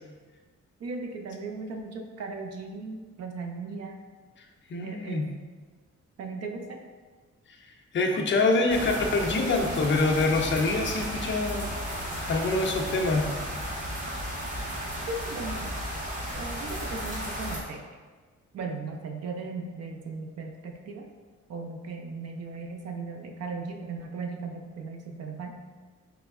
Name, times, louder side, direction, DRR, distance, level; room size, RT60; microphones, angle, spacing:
voice 1, 0.8-4.1 4.8-5.4 6.2-6.8 15.1-15.7 16.3-17.8 18.5-21.1 21.5-25.5, right 3 dB, 60° right, 4 dB, 0.5 m, -37 dB
voice 2, 4.7-5.3 7.6-12.0 12.3-13.3, left 3 dB, 40° left, 1 dB, 0.4 m, -25 dB
sound 1, 8.7-17.6, equal, 25° right, 0.8 m, -34 dB
3.3 x 3.0 x 3.5 m, 1.4 s
wide cardioid pair, 175°, 29 cm